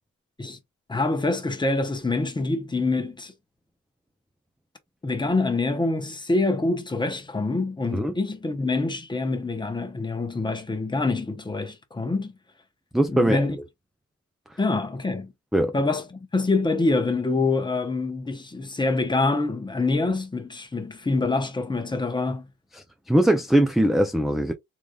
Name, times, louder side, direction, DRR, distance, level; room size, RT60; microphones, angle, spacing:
voice 1, 0.9-3.3 5.0-12.3 13.1-13.6 14.6-15.3 15.7-22.5, left 3 dB, 15° left, 0.8 m, -25 dB
voice 2, 12.9-13.4 15.5-15.7 23.1-24.5, right 1 dB, ahead, 0.4 m, -20 dB
3.7 x 3.2 x 2.3 m
cardioid pair, 130°, 31 cm